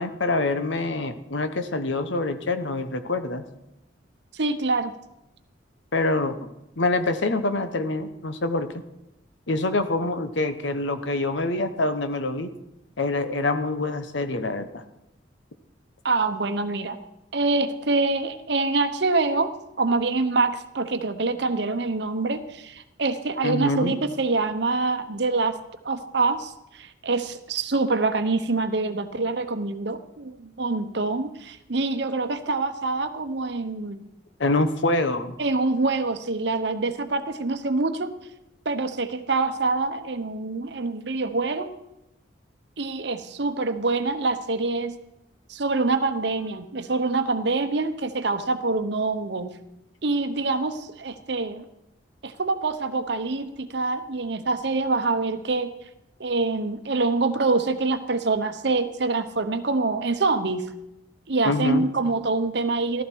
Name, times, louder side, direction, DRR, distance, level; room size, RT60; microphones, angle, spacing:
voice 1, 0.0-3.4 5.9-6.4 6.8-8.7 9.5-12.5 13.0-14.8 23.4-24.0 34.4-35.4 61.4-61.9, left 2 dB, 70° left, 9 dB, 1.1 m, -25 dB
voice 2, 4.3-4.9 16.0-17.0 17.3-25.6 25.8-34.1 35.4-38.2 38.6-41.7 42.8-44.9 45.5-49.5 50.0-51.6 52.2-55.7 56.2-60.7 61.3-63.0, right 3 dB, 60° right, 9 dB, 0.9 m, -25 dB
15.0 x 13.0 x 4.6 m, 0.90 s
head